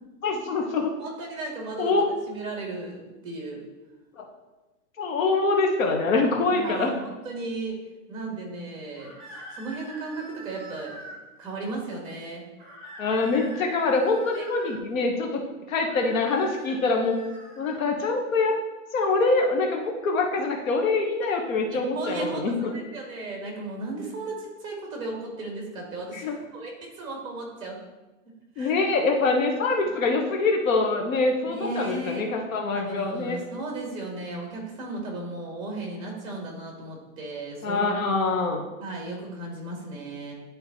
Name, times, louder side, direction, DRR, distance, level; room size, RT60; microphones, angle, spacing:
voice 1, 0.2-0.9 1.8-2.0 4.2-4.3 5.0-6.9 13.0-15.4 15.7-17.2 17.6-18.5 18.9-22.7 26.1-26.4 28.6-33.4 37.6-38.6, left 3 dB, 75° left, 2 dB, 1.2 m, -24 dB
voice 2, 1.0-1.9 2.3-3.6 6.5-7.8 8.1-11.0 11.4-12.4 14.3-14.4 21.7-27.8 28.5-28.7 29.6-29.7 31.4-32.3 32.7-37.9 38.8-40.3, right 2 dB, 10° right, 0 dB, 1.6 m, -35 dB
sound 1, 9.0-11.2 12.6-14.8 15.7-17.8, right 1 dB, 30° right, 2.5 m, -44 dB
10.0 x 3.8 x 4.2 m, 1.1 s
supercardioid pair, 180°, 40 cm